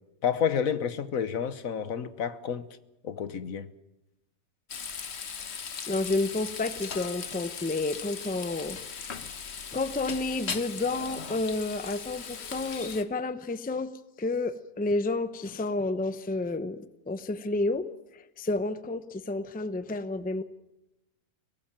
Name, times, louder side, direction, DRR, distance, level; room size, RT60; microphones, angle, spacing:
voice 1, 0.2-2.7 3.0-3.7, left 7 dB, 70° left, 1.4 m, -29 dB
Frying (food), 4.7-13.0, left 6 dB, 50° left, 1.3 m, -38 dB
voice 2, 5.9-9.2 9.7-13.9 14.2-17.9 18.1-20.4, left 2 dB, 10° left, 0.6 m, -30 dB
23.0 x 18.0 x 8.9 m
omnidirectional pair, 1.5 m